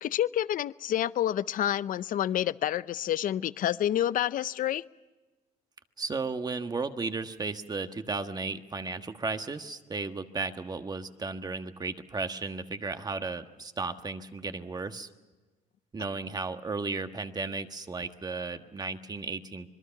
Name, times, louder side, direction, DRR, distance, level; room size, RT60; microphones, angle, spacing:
voice 1, 0.0-4.8, left 11 dB, 55° left, 17 dB, 0.6 m, -28 dB
voice 2, 6.0-15.1 15.9-19.7, right 4 dB, 25° right, 8 dB, 1.5 m, -34 dB
26.0 x 22.0 x 5.9 m, 1.2 s
cardioid pair, 110°, 17 cm